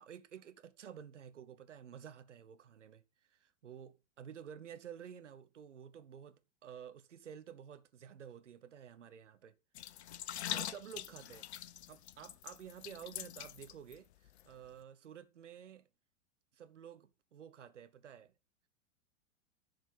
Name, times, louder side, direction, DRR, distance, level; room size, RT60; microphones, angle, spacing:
voice 1, 0.0-3.0 3.3-9.6 10.4-11.5 11.9-15.9 16.5-18.3, right 8 dB, 70° right, 1.0 m, -52 dB
sound 1, 9.7-14.0 14.3-14.4, left 11 dB, 60° left, 0.6 m, -43 dB
11.5 x 5.1 x 5.3 m
figure-of-eight pair, 95°, 38 cm